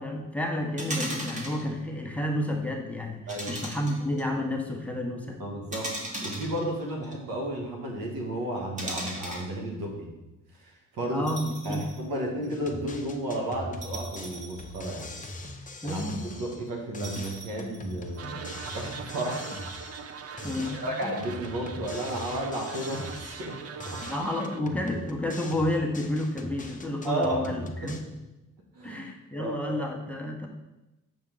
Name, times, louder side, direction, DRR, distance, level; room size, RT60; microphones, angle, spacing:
voice 1, 0.0-5.4 11.1-11.8 15.8-16.3 20.4-20.9 24.1-28.1 28.8-30.5, left 1 dB, 5° left, 1 dB, 1.1 m, -30 dB
sound 1, 0.8-1.6 3.3-4.2 5.7-7.2 8.8-9.5 11.3-12.0 12.4-12.5 13.8-15.4 17.0-18.2, right 1 dB, 20° right, 1.6 m, -37 dB
voice 2, 5.4-5.9 6.2-10.1 10.6-11.3 11.7-15.1 15.8-19.5 20.2-24.0 26.9-27.9 28.8-29.0 29.4-29.9, right 1 dB, 85° right, 0 dB, 1.6 m, -33 dB
sound 2, 12.5-16.7 16.9-20.1 20.4-23.5 23.8-28.0, left 2 dB, 25° left, 0.8 m, -41 dB
sound 3, 18.2-24.6, right 6 dB, 45° right, 0.5 m, -41 dB
7.2 x 5.3 x 3.9 m, 1.0 s
cardioid pair, 80°, 33 cm